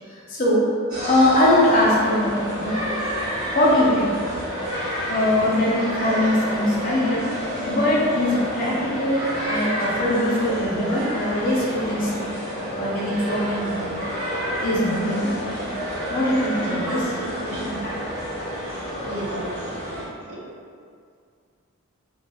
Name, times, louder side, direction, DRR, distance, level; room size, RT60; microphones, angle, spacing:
voice 1, 0.1-0.7 1.0-2.8 3.5-4.2 5.1-7.3 7.6-12.2 12.8-13.8 14.6-15.3 16.1-17.2 17.8-17.9, left 1 dB, 40° left, -5 dB, 0.5 m, -21 dB
sound 1, 0.9-20.0, equal, 45° right, 1.1 m, -29 dB
voice 2, 16.8-17.8 19.0-19.6 20.3-20.4, right 1 dB, 80° right, -6 dB, 0.7 m, -34 dB
3.0 x 2.3 x 2.2 m, 2.2 s
head